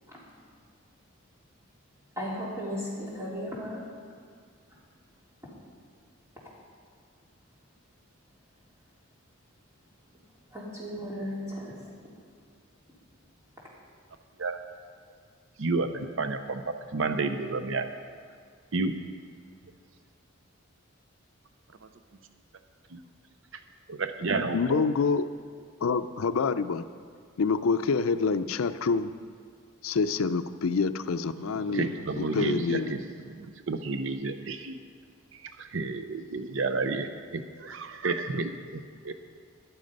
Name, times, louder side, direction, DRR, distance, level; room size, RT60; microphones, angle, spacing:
voice 1, 2.1-3.8 10.5-11.8, equal, 15° right, -6 dB, 3.4 m, -35 dB
voice 2, 15.6-17.8 18.7-18.9 21.8-21.9 22.9-23.0 23.5-23.6 23.9-24.9 31.3-34.8 35.3-39.1, right 3 dB, 70° right, 8 dB, 0.6 m, -31 dB
voice 3, 24.5-25.2 25.8-26.8 27.4-29.1 29.8-31.9 32.2-32.9, left 4 dB, 85° left, 12 dB, 0.5 m, -26 dB
13.0 x 11.0 x 5.3 m, 2.2 s
head